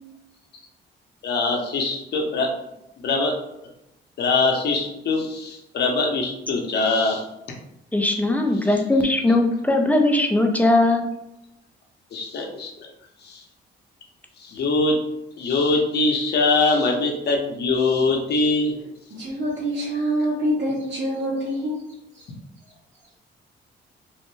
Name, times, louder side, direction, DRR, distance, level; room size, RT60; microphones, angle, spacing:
voice 1, 1.2-2.5 3.0-3.3 4.2-7.3 8.6-8.7 12.1-12.7 13.2-13.4 14.4-15.0 15.4-18.7, left 3 dB, 55° left, 1 dB, 0.8 m, -22 dB
voice 2, 7.9-11.1, left 2 dB, 10° left, 3 dB, 0.4 m, -19 dB
voice 3, 19.1-21.8 22.1-22.2, equal, 65° right, -11 dB, 1.4 m, -25 dB
3.1 x 2.1 x 3.2 m, 0.85 s
cardioid pair, 90°, 20 cm